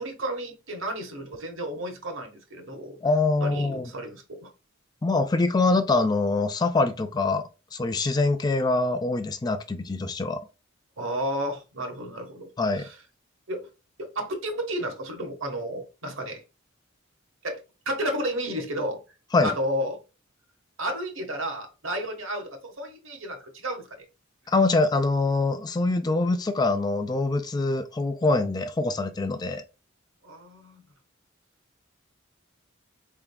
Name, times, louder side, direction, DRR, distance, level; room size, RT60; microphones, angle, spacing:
voice 1, 0.0-3.0 3.4-4.5 11.0-12.5 12.7-13.0 13.5-13.7 14.0-16.4 17.4-19.0 19.4-20.0 20.8-24.0 30.2-30.8, equal, 70° right, 1.3 m, -32 dB
voice 2, 3.0-3.9 5.0-10.4 12.6-12.9 19.3-19.5 24.5-29.6, left 3 dB, 20° left, 0.3 m, -24 dB
4.4 x 3.5 x 2.2 m
head